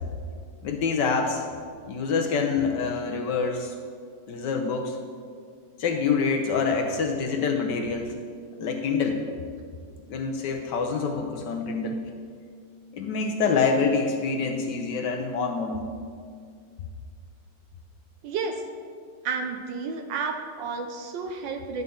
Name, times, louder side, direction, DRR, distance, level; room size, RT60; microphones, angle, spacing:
voice 1, 0.6-1.5 1.9-3.7 4.3-5.0 5.8-8.2 8.6-9.2 10.1-12.0 12.9-15.9, left 5 dB, 65° left, 3 dB, 1.2 m, -26 dB
voice 2, 18.2-18.6 19.2-21.8, right 4 dB, 70° right, 5 dB, 1.3 m, -31 dB
10.5 x 8.0 x 3.7 m, 2.1 s
omnidirectional pair, 2.3 m